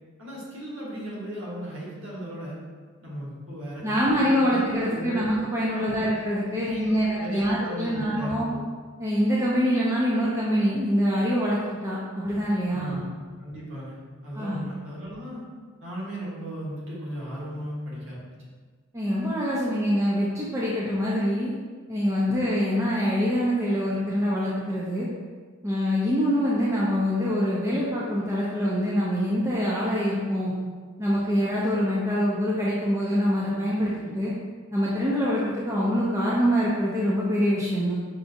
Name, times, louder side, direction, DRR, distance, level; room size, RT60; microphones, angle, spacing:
voice 1, 0.2-2.6 3.0-5.2 5.7-6.1 6.5-8.6 12.7-14.0 14.2-15.4 15.8-18.3, equal, 60° right, -6 dB, 1.2 m, -36 dB
voice 2, 3.8-8.5 9.0-13.0 14.4-14.6 18.9-21.5 21.9-25.1 25.6-30.5 31.0-34.3 34.7-37.9, equal, 15° right, -6 dB, 0.4 m, -25 dB
5.7 x 2.6 x 2.5 m, 1.6 s
head